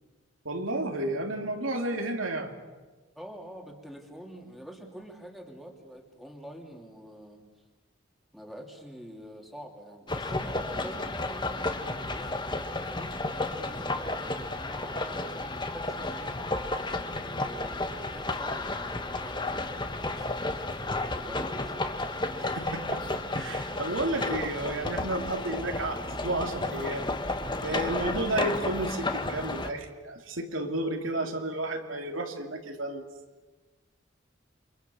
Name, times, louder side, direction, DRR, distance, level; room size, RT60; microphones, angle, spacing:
voice 1, 0.4-2.5 22.4-33.0, right 1 dB, 80° right, 3 dB, 3.0 m, -32 dB
voice 2, 3.1-7.4 8.3-16.4 17.2-21.9, equal, ahead, 1 dB, 3.2 m, -46 dB
sound 1, 10.1-29.7, left 2 dB, 25° left, 1.5 m, -32 dB
29.0 x 25.0 x 7.1 m, 1.2 s
head